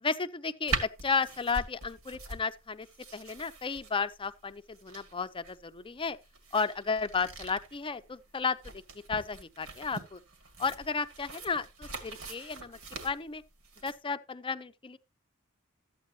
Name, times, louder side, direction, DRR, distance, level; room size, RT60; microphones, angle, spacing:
voice 1, 0.0-2.9 3.1-6.2 6.5-8.6 9.1-10.2 10.6-11.6 12.0-12.8 13.0-13.4 13.8-15.0, left 5 dB, 25° left, 0.6 m, -33 dB
sound 1, 0.7-13.9, right 3 dB, 70° right, 2.0 m, -42 dB
13.0 x 8.3 x 2.8 m
head